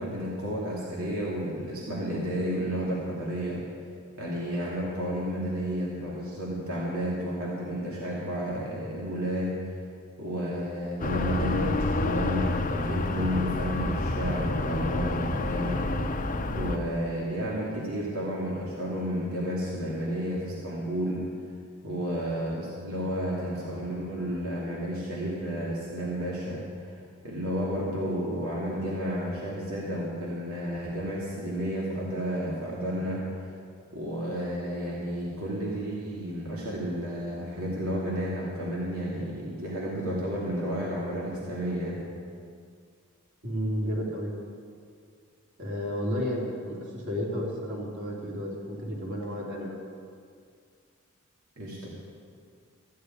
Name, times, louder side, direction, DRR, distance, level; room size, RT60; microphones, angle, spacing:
voice 1, 0.0-3.6 4.2-9.5 10.2-15.8 16.5-21.2 21.8-27.0 27.2-33.5 33.9-42.0 51.6-51.9, equal, 80° right, -5 dB, 2.5 m, -31 dB
sound 1, 11.0-16.8, left 2 dB, 40° left, 0.8 m, -28 dB
voice 2, 43.4-44.3 45.6-49.8, equal, 55° right, -4 dB, 3.4 m, -32 dB
14.5 x 6.6 x 9.7 m, 2.2 s
head